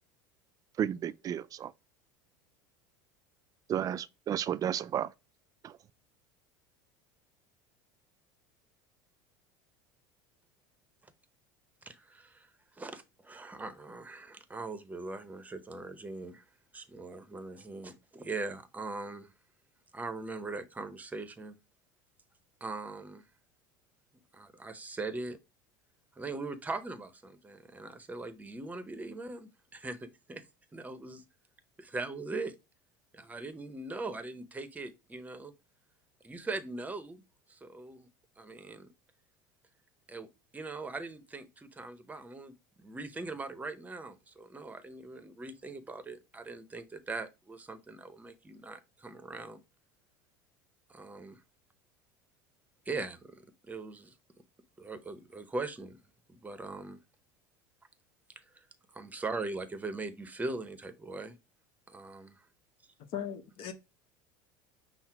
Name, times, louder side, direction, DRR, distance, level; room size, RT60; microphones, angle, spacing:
voice 1, 0.8-1.7 3.7-5.1 5.6-5.7, right 10 dB, 35° right, 0.4 m, -32 dB
voice 2, 11.8-12.5 12.8-16.4 16.7-19.3 19.9-21.6 22.6-23.2 24.3-25.4 26.2-30.4 30.7-31.2 31.8-32.5 33.1-35.5 36.2-37.2 37.5-38.1 38.4-38.9 40.1-40.3 40.5-42.5 42.8-49.6 50.9-51.4 52.9-54.1 54.8-56.0 56.3-57.0 58.5-58.6 58.9-61.3 61.9-62.4, right 3 dB, 15° right, 0.8 m, -41 dB
voice 3, 63.1-63.7, left 8 dB, 55° left, 0.9 m, -37 dB
5.6 x 2.1 x 4.6 m
hypercardioid pair, 95°, 11 cm